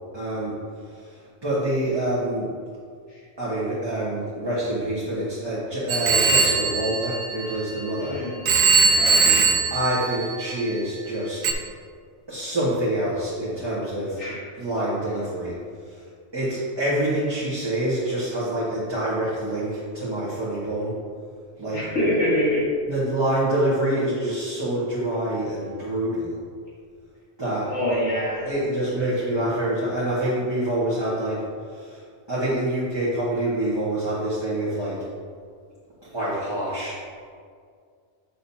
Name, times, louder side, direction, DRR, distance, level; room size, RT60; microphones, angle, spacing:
voice 1, 0.1-0.5 0.8-2.5 3.4-8.2 8.8-9.2 9.7-11.5 12.3-14.2 14.6-15.6 15.9-16.0 16.3-20.9 21.6-21.8 22.8-26.4 27.4-27.7 28.4-31.4 31.7-32.0 32.3-35.0 36.0-37.0, right 1 dB, 20° right, -10 dB, 1.5 m, -26 dB
Telephone, 5.9-8.0 8.4-10.8 11.4-11.5, right 4 dB, 70° right, 1.0 m, -21 dB
voice 2, 8.9-9.4 14.2-14.4 21.7-22.6 27.7-28.5, left 1 dB, 85° left, -8 dB, 2.1 m, -25 dB
8.5 x 6.3 x 2.8 m, 2.1 s
omnidirectional pair, 1.2 m